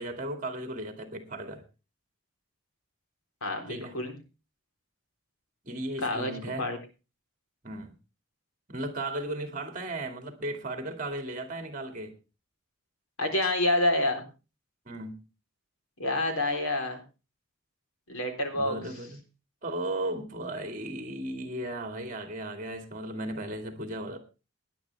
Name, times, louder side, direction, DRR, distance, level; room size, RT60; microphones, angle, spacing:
voice 1, 0.0-1.6 3.7-4.0 5.6-6.7 7.6-7.9 8.7-12.2 14.9-15.3 18.5-19.2 19.6-24.2, right 1 dB, 35° right, 2.4 m, -36 dB
voice 2, 3.4-4.2 6.0-6.3 6.6-6.8 13.2-14.2 16.0-17.0 18.1-18.8, left 1 dB, 85° left, 3.8 m, -27 dB
17.0 x 10.5 x 3.4 m
head